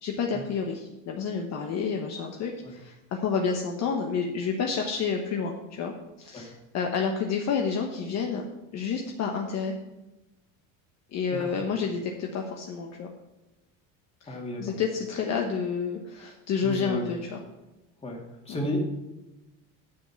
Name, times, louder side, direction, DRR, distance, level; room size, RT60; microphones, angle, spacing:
voice 1, 0.0-5.9 6.2-8.5 8.7-9.7 11.1-13.1 14.2-17.4 18.5-18.6, left 5 dB, 45° left, 2 dB, 1.2 m, -29 dB
voice 2, 14.3-14.7 16.6-17.0 18.0-18.8, left 1 dB, 15° left, 0 dB, 2.2 m, -33 dB
9.2 x 7.3 x 5.9 m, 1.0 s
cardioid pair, 140°, 38 cm